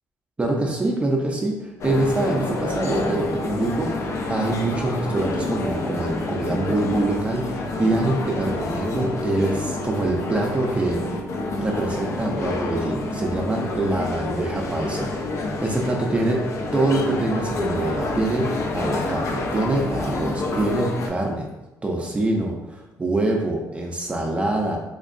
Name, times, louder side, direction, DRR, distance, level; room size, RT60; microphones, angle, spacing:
voice 1, 0.4-3.9 4.3-11.0 11.6-16.4 16.7-18.5 18.7-21.5 21.8-24.8, right 2 dB, 20° right, 0 dB, 0.5 m, -24 dB
sound 1, 1.8-21.1, left 2 dB, 50° left, 0.5 m, -28 dB
3.6 x 3.0 x 2.5 m, 0.97 s
cardioid pair, 120°, 6 cm